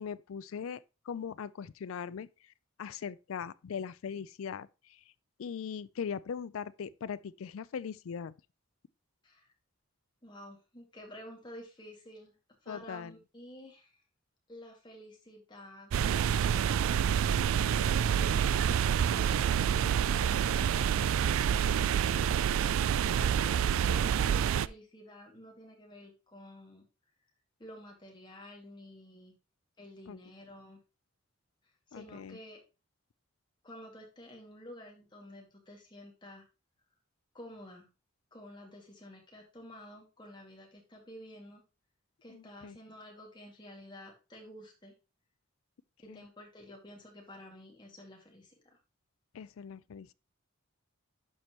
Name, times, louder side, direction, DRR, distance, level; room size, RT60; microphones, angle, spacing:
voice 1, 0.0-2.3 2.8-4.7 5.4-8.3 12.7-13.1 30.1-30.2 31.9-32.4 42.3-42.8 46.1-46.2 49.3-50.1, left 7 dB, 75° left, 0.4 m, -40 dB
voice 2, 10.2-12.4 12.6-14.0 14.5-15.9 17.7-18.5 18.8-21.4 23.2-26.8 27.6-29.3 29.8-30.8 31.9-32.6 33.6-36.4 37.3-37.9 38.3-41.6 42.2-44.9 46.0-48.8, equal, 20° left, 2.2 m, -51 dB
sound 1, 15.9-24.7, right 8 dB, 75° right, 0.3 m, -27 dB
12.0 x 4.5 x 3.0 m
head